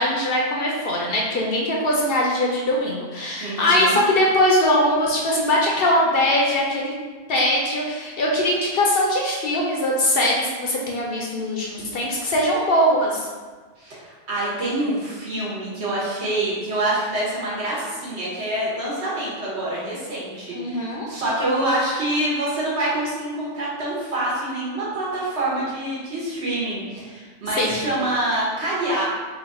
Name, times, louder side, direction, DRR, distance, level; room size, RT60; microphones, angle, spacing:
voice 1, 0.0-6.9 7.3-13.3 20.5-21.1 27.6-27.8, left 1 dB, 60° left, -2 dB, 0.7 m, -21 dB
voice 2, 3.4-4.0 13.8-29.0, right 1 dB, 65° right, -7 dB, 1.3 m, -26 dB
3.0 x 2.4 x 4.0 m, 1.4 s
omnidirectional pair, 1.2 m